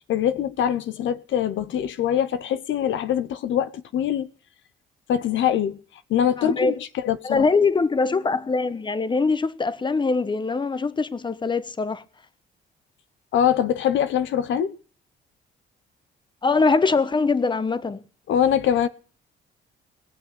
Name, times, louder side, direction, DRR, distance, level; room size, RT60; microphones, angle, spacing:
voice 1, 0.1-4.3 5.1-5.8 6.1-7.5 13.3-14.7 18.3-18.9, left 9 dB, 75° left, 0.9 m, -23 dB
voice 2, 6.4-6.7 7.2-12.0 16.4-18.0, left 4 dB, 25° left, 1.0 m, -22 dB
20.0 x 6.9 x 8.2 m
cardioid pair, 90°, 20 cm